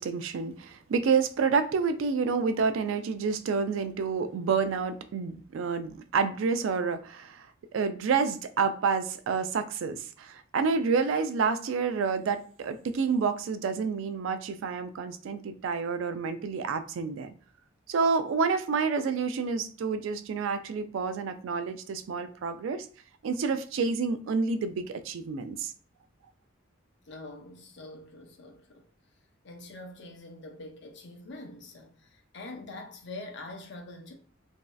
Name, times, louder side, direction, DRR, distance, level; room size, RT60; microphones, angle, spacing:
voice 1, 0.0-7.4 7.7-17.3 17.9-22.9 23.2-25.7, right 5 dB, 75° right, 0.3 m, -29 dB
voice 2, 27.1-28.9 29.4-34.1, left 2 dB, 60° left, 0.6 m, -44 dB
3.0 x 2.6 x 2.3 m
head